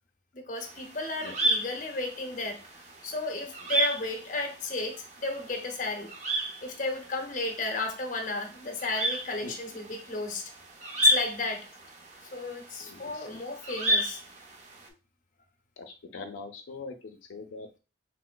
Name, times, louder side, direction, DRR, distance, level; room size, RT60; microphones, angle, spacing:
voice 1, 0.3-2.6 3.0-6.1 6.6-10.5 11.0-11.7 12.3-14.2, left 2 dB, 45° left, 0.6 m, -33 dB
sound 1, 0.6-14.9, equal, 35° right, 0.4 m, -33 dB
voice 2, 12.8-13.4 15.8-17.8, left 4 dB, 90° left, 0.4 m, -43 dB
3.1 x 2.9 x 2.2 m
head